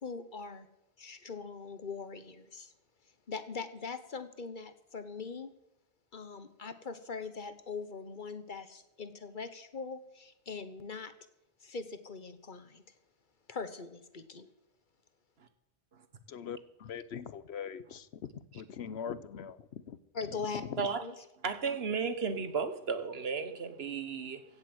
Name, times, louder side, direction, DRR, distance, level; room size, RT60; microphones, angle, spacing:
voice 1, 0.0-0.7 1.0-2.7 3.3-5.5 6.1-11.1 11.6-12.8 13.5-14.5 20.1-20.6 21.0-21.1, left 4 dB, 50° left, 1.3 m, -41 dB
voice 2, 16.3-18.1 18.5-20.0 20.6-20.9, left 7 dB, 80° left, 1.0 m, -41 dB
voice 3, 21.4-24.4, right 5 dB, 70° right, 1.5 m, -34 dB
16.0 x 7.7 x 8.0 m
omnidirectional pair, 1.1 m